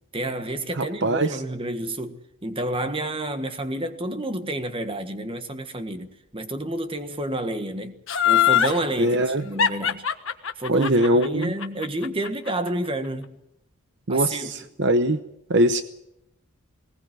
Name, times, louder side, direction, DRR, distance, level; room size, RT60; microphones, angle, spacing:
voice 1, 0.1-6.1 6.3-7.9 8.2-10.0 10.6-13.3 14.1-14.7, right 1 dB, 25° right, 1.5 m, -29 dB
voice 2, 0.7-1.4 9.0-9.4 10.7-11.5 14.1-15.2 15.5-15.8, right 1 dB, 55° right, 0.9 m, -21 dB
Laughter, 8.1-8.8 9.6-12.7 13.0-13.1, left 9 dB, 60° left, 1.4 m, -21 dB
20.0 x 19.0 x 7.7 m
head